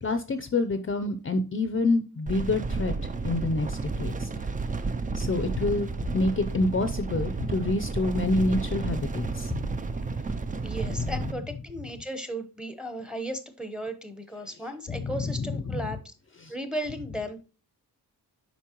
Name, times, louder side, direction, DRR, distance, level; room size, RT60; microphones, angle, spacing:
voice 1, 0.0-2.9 3.2-4.3 5.1-9.7 14.9-15.8, left 2 dB, 30° left, 9 dB, 0.5 m, -27 dB
sound 1, 2.3-11.3, right 4 dB, 20° right, 0.3 m, -31 dB
voice 2, 10.6-16.1 16.5-17.4, right 1 dB, ahead, 8 dB, 0.8 m, -35 dB
8.4 x 5.4 x 2.9 m, 0.33 s
wide cardioid pair, 155°, 40 cm